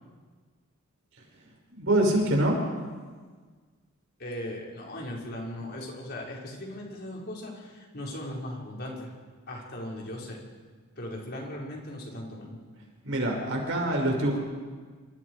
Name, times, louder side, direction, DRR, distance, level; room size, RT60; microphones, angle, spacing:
voice 1, 1.7-2.6 13.0-14.4, right 1 dB, 60° right, 0 dB, 5.8 m, -25 dB
voice 2, 4.2-9.1 9.5-10.4 11.0-12.6, left 1 dB, 50° left, -2 dB, 5.2 m, -38 dB
28.0 x 25.0 x 4.9 m, 1.5 s
head